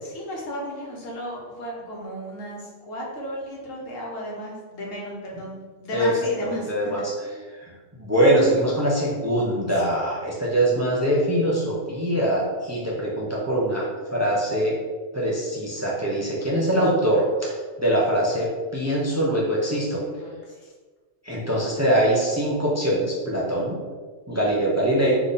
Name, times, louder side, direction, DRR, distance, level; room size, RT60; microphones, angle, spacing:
voice 1, 0.0-7.4 8.8-8.9 19.9-20.7, equal, 85° left, -3 dB, 1.5 m, -35 dB
voice 2, 6.4-7.1 8.0-14.7 15.1-18.5 18.7-20.0 21.2-23.8 24.3-25.2, right 1 dB, 15° right, -4 dB, 0.7 m, -23 dB
3.6 x 3.5 x 4.0 m, 1.4 s
omnidirectional pair, 1.3 m